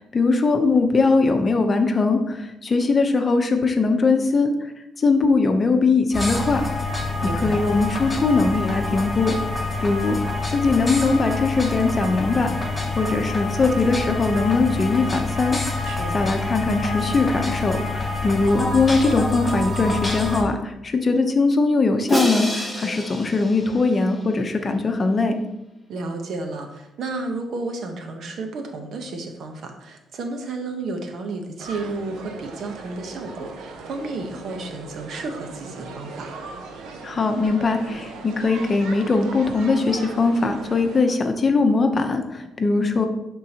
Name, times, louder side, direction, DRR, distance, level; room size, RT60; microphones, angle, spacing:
voice 1, 0.1-4.7 5.0-6.7 7.2-9.3 9.8-12.5 13.0-15.6 16.1-25.3 37.0-43.1, left 3 dB, 35° left, 6 dB, 0.8 m, -21 dB
sound 1, 6.1-20.4, left 3 dB, 20° left, 1.9 m, -27 dB
voice 2, 7.2-7.6 15.8-16.2 25.9-36.3, right 3 dB, 65° right, 4 dB, 1.0 m, -32 dB
Crash cymbal, 22.1-24.3, equal, 5° right, 1.4 m, -28 dB
sound 2, 31.6-41.0, right 4 dB, 85° right, 0.8 m, -38 dB
10.5 x 3.8 x 2.9 m, 0.91 s
cardioid pair, 90°, 0 cm